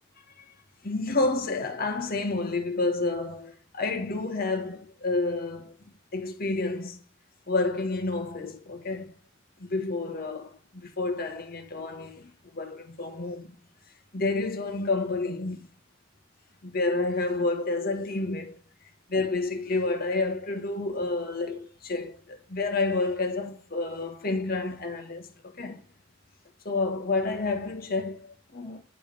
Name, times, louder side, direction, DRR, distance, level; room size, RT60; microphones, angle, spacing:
voice 1, 0.8-5.8 6.1-7.0 7.5-9.1 9.6-13.5 14.1-15.7 16.6-18.6 19.1-25.8 26.6-28.8, left 3 dB, 50° left, 1.6 m, -29 dB
10.0 x 4.9 x 3.5 m
head